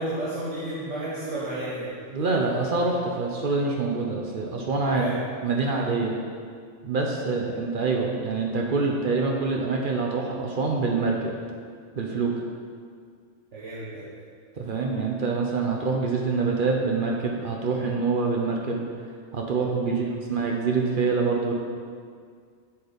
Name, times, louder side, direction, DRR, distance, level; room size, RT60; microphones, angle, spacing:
voice 1, 0.0-1.9 4.8-5.1 13.5-14.0 19.8-20.1, right 1 dB, 75° right, -9 dB, 1.5 m, -32 dB
voice 2, 2.1-5.0 5.4-6.2 6.8-11.3 12.0-12.3 14.6-18.8 19.3-20.0 20.3-21.5, right 4 dB, 55° right, 0 dB, 0.7 m, -25 dB
6.9 x 4.0 x 5.0 m, 2.1 s
omnidirectional pair, 1.3 m